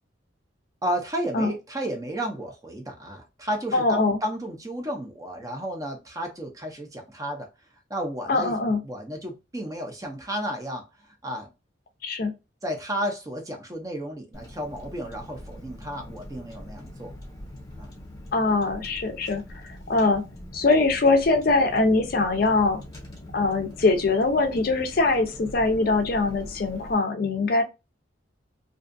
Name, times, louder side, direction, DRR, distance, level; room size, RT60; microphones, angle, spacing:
voice 1, 0.8-7.5 7.9-8.6 8.8-11.5 12.6-17.1 17.8-17.9, equal, 15° right, 0.5 m, -32 dB
voice 2, 3.7-4.2 8.3-8.8 12.0-12.3 18.3-19.4 19.9-20.2 20.5-22.8 23.3-27.6, left 3 dB, 45° left, 0.5 m, -22 dB
Car, 14.3-27.0, left 1 dB, 15° left, 0.8 m, -43 dB
2.5 x 2.3 x 2.5 m
head